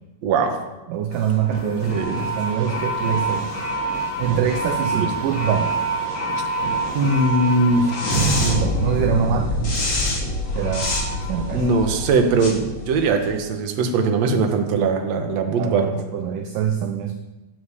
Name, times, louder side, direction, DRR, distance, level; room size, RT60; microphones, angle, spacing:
voice 1, 0.2-0.6 1.9-2.2 4.9-5.1 6.9-7.8 11.5-15.9, right 3 dB, 50° right, 4 dB, 2.3 m, -20 dB
voice 2, 0.9-3.6 4.2-5.7 6.6-6.7 8.1-9.8 10.5-11.0 11.3-11.7 15.5-17.1, right 8 dB, 70° right, 6 dB, 2.2 m, -24 dB
sound 1, 1.1-13.5, right 1 dB, 30° left, 2.8 m, -25 dB
12.5 x 11.0 x 8.5 m, 1.0 s
omnidirectional pair, 4.7 m